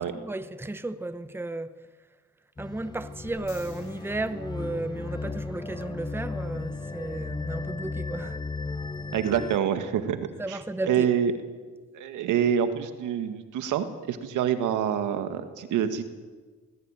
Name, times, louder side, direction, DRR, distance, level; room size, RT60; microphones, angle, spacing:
voice 1, 0.0-1.8 2.6-8.4 10.4-11.1, right 2 dB, 5° right, 1.0 m, -34 dB
sound 1, 2.6-9.6, left 3 dB, 15° left, 0.6 m, -35 dB
sound 2, 3.3-5.5 8.9-9.0, left 6 dB, 65° left, 5.6 m, -53 dB
voice 2, 9.1-10.2 10.5-10.6 10.8-11.3 11.9-16.0, right 9 dB, 85° right, 2.0 m, -26 dB
20.0 x 16.5 x 9.1 m
cardioid pair, 90°, 30 cm